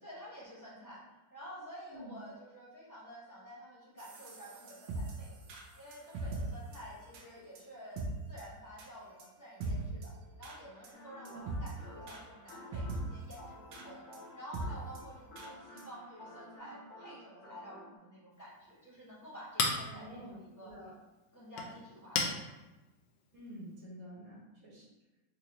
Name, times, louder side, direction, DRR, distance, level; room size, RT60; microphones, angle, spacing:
voice 1, 0.0-1.0 1.3-5.5 5.7-10.1 10.4-14.0 14.3-20.7 21.3-22.5, equal, 10° left, -8 dB, 1.1 m, -50 dB
sound 1, 4.0-6.4 6.7-6.8 7.1-7.2 7.6-7.7 8.0-8.1 8.4-8.5 8.8-8.9 9.2-9.3 9.6-10.1 10.4-10.6 10.8-10.9 11.3-11.7 12.1-12.2 12.5-13.0 13.3-13.4 13.7-13.9 14.1-14.2 14.5-14.7 14.9-15.0 15.4-15.5 15.8-15.9 16.2-16.3, right 3 dB, 75° right, 1.3 m, -40 dB
sound 2, 10.9-18.0, left 1 dB, 50° left, 1.1 m, -52 dB
Chink clink, 18.3-23.8, left 4 dB, 70° left, 1.2 m, -39 dB
voice 2, 19.9-20.9 23.3-24.9, right 1 dB, 50° right, -5 dB, 1.5 m, -49 dB
3.9 x 2.9 x 3.0 m, 1.1 s
omnidirectional pair, 2.2 m